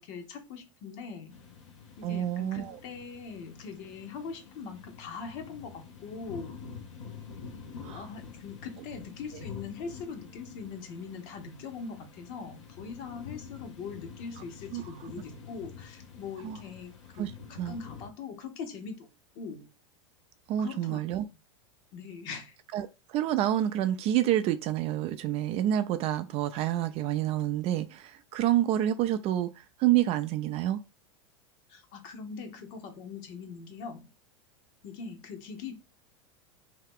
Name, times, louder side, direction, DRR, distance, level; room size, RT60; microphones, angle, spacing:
voice 1, 0.0-1.4 2.0-6.6 7.9-19.1 19.3-19.7 20.6-21.0 21.9-22.6 31.7-34.1 34.8-35.7, left 5 dB, 55° left, 0.9 m, -42 dB
sound 1, 1.3-18.1, left 6 dB, 80° left, 0.8 m, -47 dB
voice 2, 2.0-2.8 7.8-8.0 14.7-14.8 16.4-16.6 17.2-17.3 17.6-17.8 20.5-21.2 22.7-30.8, right 12 dB, 40° right, 0.4 m, -28 dB
2.8 x 2.2 x 3.5 m
hypercardioid pair, 105°, 16 cm